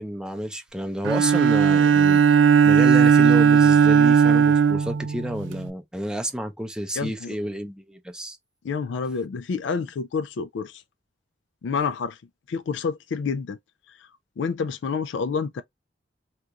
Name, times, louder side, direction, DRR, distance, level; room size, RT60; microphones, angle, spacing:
voice 1, 0.0-8.4, equal, 5° right, 0.5 m, -30 dB
Bowed string instrument, 1.0-5.7, right 6 dB, 90° right, 0.4 m, -17 dB
voice 2, 7.0-7.3 8.6-10.8 11.6-12.2 12.5-13.6 14.4-15.6, left 5 dB, 75° left, 0.3 m, -28 dB
2.8 x 2.5 x 3.5 m
head